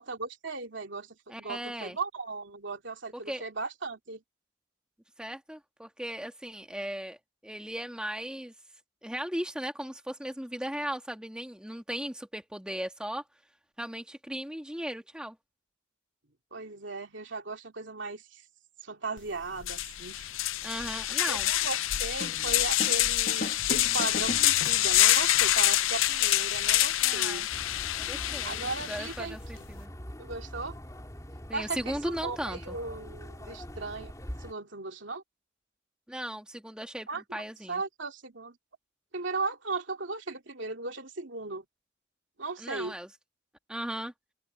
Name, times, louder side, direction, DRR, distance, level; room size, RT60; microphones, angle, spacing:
voice 1, 0.0-4.2 16.5-18.4 18.8-20.3 20.6-20.7 21.3-27.5 28.4-29.4 30.2-30.8 31.5-34.1 34.4-35.2 37.1-37.2 37.7-38.6 39.1-41.6 42.4-42.9, right 3 dB, 70° right, 2.8 m, -37 dB
voice 2, 1.3-2.0 3.3-3.4 5.2-7.2 7.4-8.5 9.0-13.2 13.8-15.4 20.6-21.5 27.0-27.5 28.0-29.9 31.5-32.8 36.1-37.8 42.6-43.1 43.7-44.1, equal, 5° right, 1.7 m, -37 dB
sound 1, 19.2-19.3 19.6-29.2, left 14 dB, 90° left, 0.5 m, -26 dB
sound 2, 22.2-23.0 23.3-25.0, left 2 dB, 50° left, 1.7 m, -37 dB
sound 3, 27.5-34.5, equal, 15° left, 3.7 m, -43 dB
head